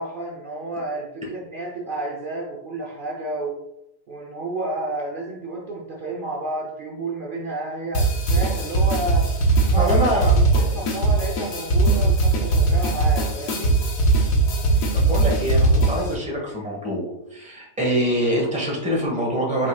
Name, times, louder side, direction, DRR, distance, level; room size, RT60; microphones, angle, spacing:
voice 1, 0.0-3.6 4.1-9.3 9.7-9.9 10.2-13.8, right 2 dB, 70° right, -2 dB, 0.5 m, -31 dB
sound 1, 7.9-16.1, right 2 dB, 80° left, 1.4 m, -20 dB
voice 2, 9.8-10.3 14.7-19.7, equal, 5° right, -3 dB, 0.9 m, -25 dB
4.8 x 4.2 x 2.3 m, 0.86 s
omnidirectional pair, 1.7 m